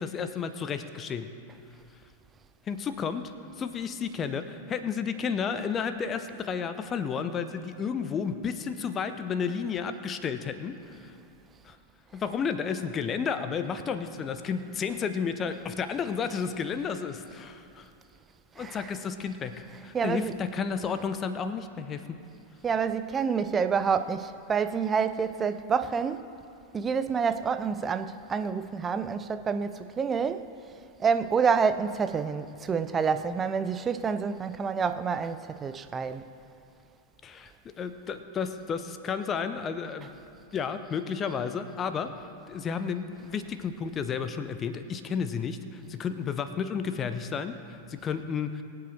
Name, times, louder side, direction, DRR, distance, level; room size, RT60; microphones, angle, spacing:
voice 1, 0.0-1.4 2.7-3.3 3.6-11.1 11.6-11.8 12.1-17.9 18.6-22.2 37.2-40.2 40.5-42.1 42.5-48.6, left 6 dB, 25° left, 0.8 m, -32 dB
voice 2, 19.9-20.3 22.6-26.3 26.7-30.5 31.0-36.2, right 6 dB, 20° right, 0.5 m, -28 dB
22.5 x 8.4 x 3.4 m
figure-of-eight pair, 90°, 0 cm